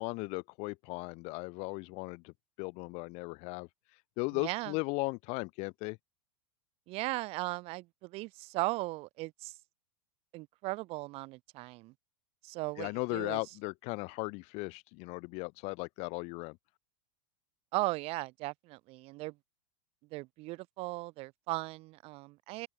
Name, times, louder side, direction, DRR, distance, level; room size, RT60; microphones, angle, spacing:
voice 1, 0.0-3.7 4.2-6.0 12.8-16.6, left 29 dB, 45° left, 0.4 m, -37 dB
voice 2, 4.3-4.7 6.9-9.5 10.3-11.9 12.4-13.4 17.7-19.3 20.1-22.7, right 21 dB, 40° right, 0.4 m, -37 dB
open air
hypercardioid pair, 105°, 16 cm